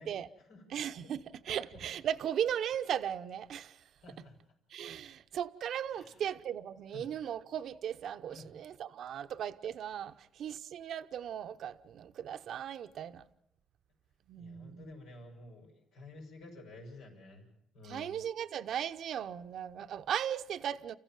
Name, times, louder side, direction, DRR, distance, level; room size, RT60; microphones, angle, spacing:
voice 1, 0.7-3.8 4.7-13.2 14.3-14.9 17.8-21.0, right 9 dB, 70° right, 0.8 m, -37 dB
voice 2, 4.0-4.4 5.9-6.2 6.9-7.1 8.3-8.5 14.4-17.5 17.7-18.2, left 2 dB, 90° left, 6.6 m, -51 dB
30.0 x 15.0 x 7.6 m
cardioid pair, 90°, 0 cm